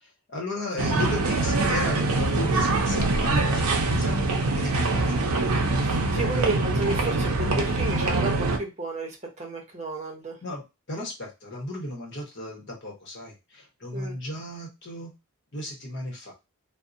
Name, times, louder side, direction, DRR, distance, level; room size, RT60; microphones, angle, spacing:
voice 1, 0.0-5.2 6.1-6.4 10.4-10.6 10.9-15.1 15.5-16.3, left 1 dB, 50° left, -1 dB, 0.9 m, -35 dB
sound 1, 0.8-8.6, right 2 dB, 80° right, 0.5 m, -24 dB
voice 2, 5.8-10.4 13.9-14.1, right 2 dB, 30° right, 1 dB, 0.7 m, -32 dB
2.6 x 2.1 x 2.5 m, 0.25 s
head